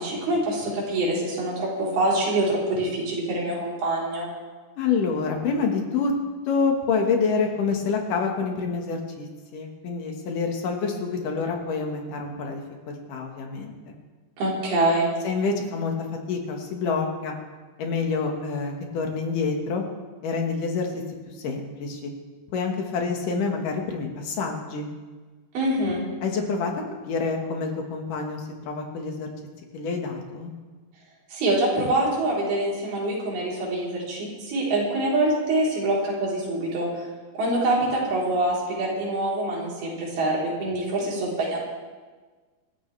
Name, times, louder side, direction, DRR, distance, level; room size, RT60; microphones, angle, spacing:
voice 1, 0.0-4.3 14.4-15.1 25.5-26.0 31.3-36.9 37.3-41.6, right 1 dB, 80° right, -5 dB, 5.9 m, -25 dB
voice 2, 4.8-6.1 6.5-13.9 15.2-15.9 16.3-17.3 17.8-19.8 20.2-21.0 21.4-22.1 22.5-24.9 26.2-29.3 29.7-30.5, left 4 dB, 65° left, 2 dB, 3.1 m, -27 dB
27.0 x 13.0 x 3.4 m, 1.4 s
omnidirectional pair, 4.4 m